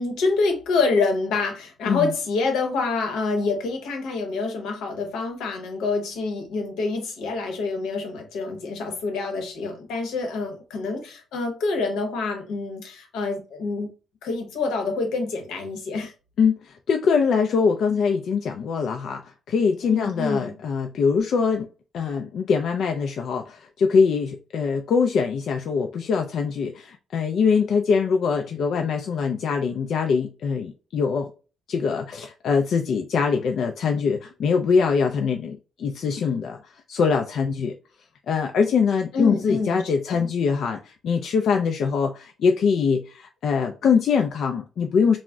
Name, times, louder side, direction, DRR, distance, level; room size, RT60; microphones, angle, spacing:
voice 1, 0.0-13.9 14.2-16.1 19.8-20.5 39.1-39.8 40.1-40.2, left 3 dB, 90° left, 0.8 m, -27 dB
voice 2, 16.4-21.7 21.9-31.3 31.7-37.7 38.3-45.2, left 5 dB, 65° left, 0.3 m, -23 dB
2.2 x 2.0 x 3.6 m
cardioid pair, 90°, 0 cm